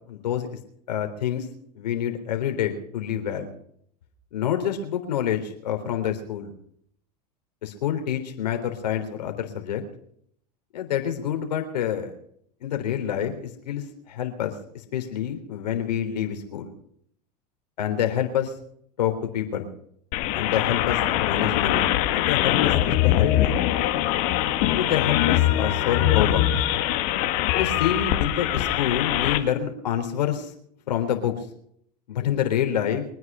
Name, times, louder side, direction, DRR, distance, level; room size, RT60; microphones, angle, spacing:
voice 1, 0.1-0.6 0.9-1.5 1.7-3.5 4.3-6.5 7.6-9.8 10.7-12.1 12.6-16.7 17.8-18.5 19.0-19.7 20.3-23.6 24.7-26.5 27.6-30.5 30.9-31.5 32.1-33.1, left 9 dB, 80° left, 6 dB, 3.6 m, -27 dB
sound 1, 20.1-29.4, left 13 dB, 60° left, 1.9 m, -22 dB
23.5 x 9.6 x 5.5 m, 0.66 s
hypercardioid pair, 95°, 21 cm